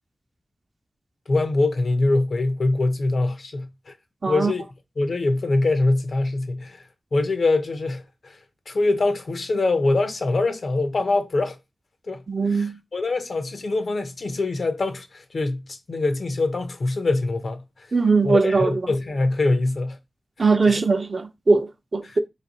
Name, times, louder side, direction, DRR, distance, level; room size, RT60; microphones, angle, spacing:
voice 1, 1.3-3.9 4.3-4.7 5.0-6.9 7.1-8.4 8.7-11.6 12.1-12.2 12.5-17.9 18.2-20.0 20.7-20.8 22.0-22.2, left 2 dB, 75° left, 0.7 m, -24 dB
voice 2, 12.3-12.8 17.9-18.9 20.4-22.2, right 4 dB, 60° right, 0.6 m, -20 dB
3.2 x 2.6 x 4.0 m
cardioid pair, 50°, 0 cm